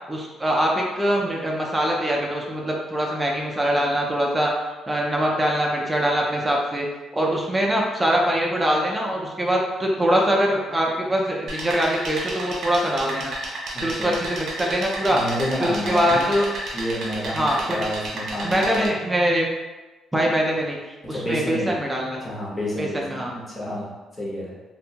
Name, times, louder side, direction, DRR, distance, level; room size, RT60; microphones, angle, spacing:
voice 1, 0.1-4.5 4.9-6.9 7.1-13.3 13.8-15.2 15.6-16.5 17.3-17.8 18.4-19.5 20.1-20.8 21.1-22.2 22.8-23.3, equal, 10° right, -2 dB, 0.4 m, -23 dB
sound 1, 11.5-18.9, right 1 dB, 65° right, 0.5 m, -32 dB
voice 2, 13.7-14.1 15.1-16.3 16.7-18.9 21.1-21.8 22.2-24.6, left 1 dB, 25° left, -5 dB, 0.8 m, -29 dB
2.5 x 2.1 x 2.7 m, 1.2 s
cardioid pair, 120°, 0 cm